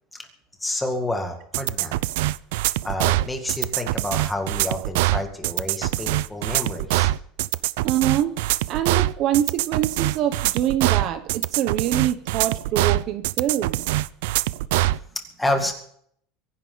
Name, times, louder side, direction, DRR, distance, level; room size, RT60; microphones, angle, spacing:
voice 1, 0.6-2.0 2.8-7.1 15.4-15.7, left 1 dB, 5° left, 4 dB, 2.1 m, -29 dB
sound 1, 1.5-15.0, right 17 dB, 70° right, 0.5 m, -23 dB
voice 2, 7.8-8.4 8.7-13.8, right 11 dB, 40° right, 10 dB, 0.9 m, -24 dB
24.0 x 11.0 x 4.0 m, 0.64 s
cardioid pair, 175°, 0 cm